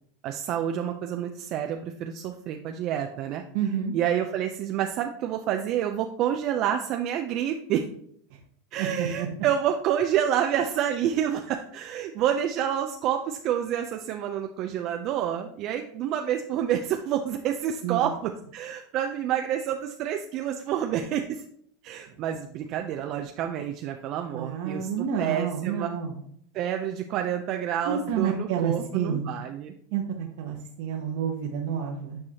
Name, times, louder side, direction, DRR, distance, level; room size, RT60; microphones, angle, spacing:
voice 1, 0.2-3.4 3.9-7.9 8.7-21.4 21.8-25.9 26.5-29.7, right 10 dB, 50° right, 5 dB, 0.5 m, -28 dB
voice 2, 3.5-4.0 8.8-9.3 17.8-18.1 24.3-26.1 27.8-29.3 29.9-32.2, right 7 dB, 65° right, 0 dB, 1.0 m, -29 dB
8.6 x 4.7 x 2.9 m, 0.66 s
supercardioid pair, 120°, 0 cm